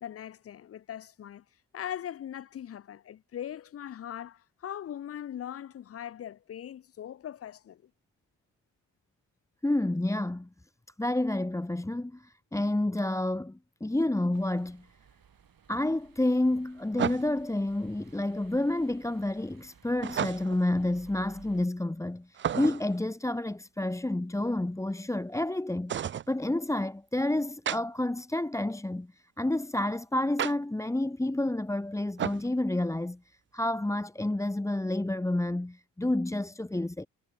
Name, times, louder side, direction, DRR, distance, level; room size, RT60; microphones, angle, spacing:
voice 1, 0.0-1.4 1.7-7.9, left 10 dB, 30° left, 0.5 m, -40 dB
voice 2, 9.6-10.5 11.0-14.9 15.7-26.0 26.3-37.1, left 1 dB, 5° left, 0.9 m, -29 dB
sound 1, 14.3-14.4 17.0-17.5 20.0-20.7 22.3-23.0 25.9-26.3 27.7-27.8 30.4-30.5 32.2-32.5, right 9 dB, 25° right, 0.4 m, -32 dB
sound 2, 14.3-21.7, right 7 dB, 45° right, 2.5 m, -58 dB
hypercardioid pair, 45°, 48 cm